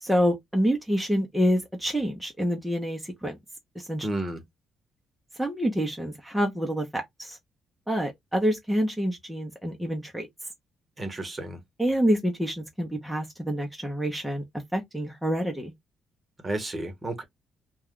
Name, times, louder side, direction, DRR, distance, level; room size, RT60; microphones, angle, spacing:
voice 1, 0.0-3.4 3.8-4.1 5.4-7.4 7.9-10.3 11.8-14.4 14.7-15.7, equal, ahead, 0.7 m, -27 dB
voice 2, 4.0-4.4 11.0-11.6 16.4-17.2, right 2 dB, 25° right, 0.9 m, -32 dB
2.3 x 2.2 x 3.6 m
cardioid pair, 90°, 0 cm